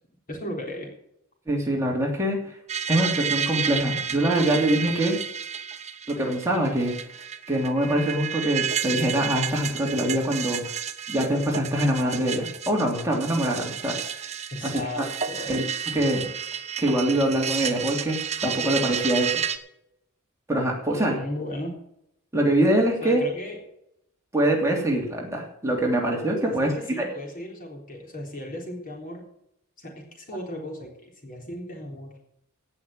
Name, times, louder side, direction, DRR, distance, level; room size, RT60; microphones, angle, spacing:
voice 1, 0.3-0.9 14.5-15.5 20.9-21.8 23.0-23.6 26.4-29.2 29.8-32.2, left 1 dB, 40° left, 0 dB, 3.7 m, -36 dB
voice 2, 1.5-2.5 2.9-5.2 6.1-6.9 7.5-10.6 11.1-14.0 14.6-15.1 15.5-15.6 15.9-16.2 16.8-19.3 20.5-21.2 22.3-23.2 24.3-27.1, right 1 dB, 15° right, -1 dB, 2.9 m, -24 dB
sound 1, 2.7-19.6, right 8 dB, 30° right, 0.9 m, -31 dB
17.0 x 6.0 x 7.6 m, 0.77 s
head